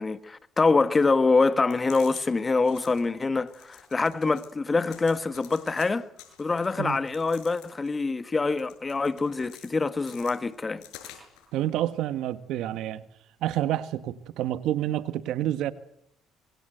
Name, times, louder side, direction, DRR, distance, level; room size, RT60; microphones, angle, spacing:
voice 1, 0.0-6.1 6.4-10.8, left 3 dB, 25° left, 1.5 m, -25 dB
sound 1, 1.5-2.2 2.6-3.0 3.5-4.5 4.9-5.9 6.2-8.0 8.4-9.7 10.0-11.5, left 11 dB, 85° left, 7.3 m, -49 dB
voice 2, 11.5-13.0 13.4-15.7, right 13 dB, 75° right, 1.5 m, -28 dB
25.5 x 24.0 x 8.0 m
supercardioid pair, 85°, 0 cm